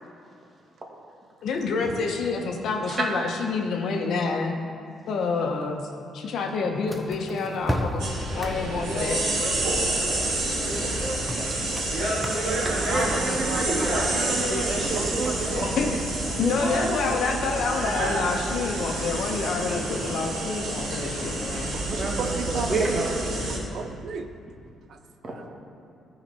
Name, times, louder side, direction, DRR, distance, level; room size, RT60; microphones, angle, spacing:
voice 1, 1.4-4.5 5.1-5.8 6.1-9.2 15.6-16.0 16.4-21.7, left 4 dB, 70° left, 3 dB, 1.0 m, -28 dB
sound 1, 6.9-13.1, equal, 5° right, 0.7 m, -35 dB
sound 2, 8.0-23.6, right 1 dB, 90° right, 2.2 m, -28 dB
voice 2, 10.9-11.8 14.9-15.4 21.4-21.5 21.7-23.0 23.7-24.3 24.9-25.0 25.2-25.5, right 5 dB, 70° right, 6 dB, 0.6 m, -34 dB
voice 3, 12.6-15.7 16.3-16.5 22.0-23.1 25.2-25.3, right 2 dB, 35° right, -1 dB, 1.9 m, -30 dB
13.5 x 5.0 x 4.3 m, 2.5 s
cardioid pair, 90°, 0 cm